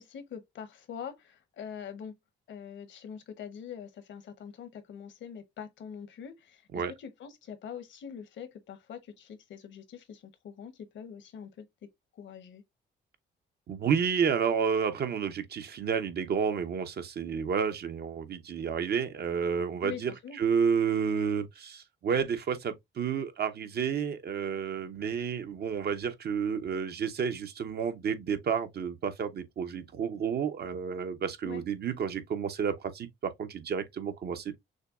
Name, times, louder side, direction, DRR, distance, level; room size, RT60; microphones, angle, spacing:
voice 1, 0.0-2.1 2.5-11.7 12.1-12.6 19.8-20.4 31.4-31.6, left 8 dB, 70° left, 1.0 m, -44 dB
voice 2, 13.7-20.1 20.4-34.6, right 6 dB, 55° right, 0.8 m, -30 dB
6.3 x 2.3 x 2.4 m
cardioid pair, 90°, 20 cm